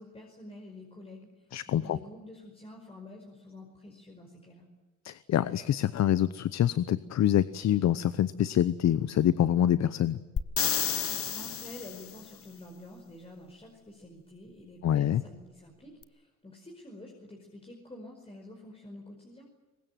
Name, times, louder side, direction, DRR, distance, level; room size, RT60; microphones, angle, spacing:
voice 1, 0.0-4.7 11.1-19.5, left 1 dB, 20° left, 1 dB, 5.1 m, -48 dB
voice 2, 1.5-2.0 5.0-10.2 14.8-15.2, left 11 dB, 60° left, 15 dB, 0.9 m, -26 dB
sound 1, 10.4-12.2 16.0-16.1, left 8 dB, 45° left, 1.2 m, -30 dB
23.0 x 20.0 x 9.2 m, 1.2 s
cardioid pair, 90°, 30 cm